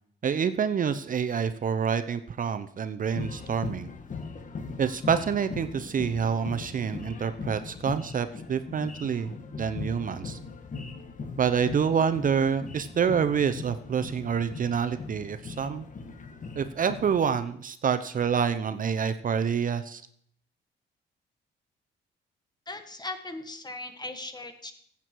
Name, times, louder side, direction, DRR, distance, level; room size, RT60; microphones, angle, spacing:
voice 1, 0.2-3.9 4.8-9.3 9.6-10.4 11.4-15.9 16.6-20.0, right 7 dB, 45° right, 10 dB, 0.7 m, -27 dB
sound 1, 3.1-17.4, left 4 dB, 40° left, 1.6 m, -40 dB
voice 2, 22.7-24.7, left 2 dB, 20° left, 7 dB, 1.6 m, -38 dB
14.5 x 8.3 x 4.7 m, 0.65 s
cardioid pair, 90°, 20 cm